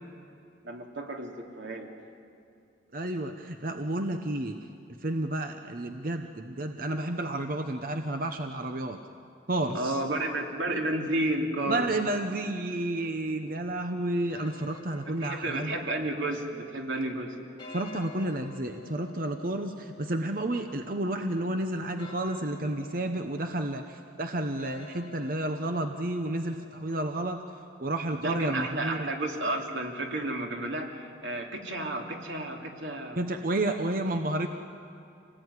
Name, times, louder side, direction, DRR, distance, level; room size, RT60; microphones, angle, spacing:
voice 1, 0.6-1.9 9.7-11.9 15.0-17.3 28.1-33.2, right 1 dB, 85° right, 1 dB, 3.0 m, -32 dB
voice 2, 2.9-4.6 5.0-9.0 9.5-10.0 11.7-15.7 17.7-27.4 27.8-29.1 33.2-34.5, right 1 dB, 50° right, 6 dB, 0.9 m, -31 dB
sound 1, 14.3-26.8, left 3 dB, 25° left, 4.6 m, -51 dB
26.5 x 19.0 x 9.8 m, 2.5 s
head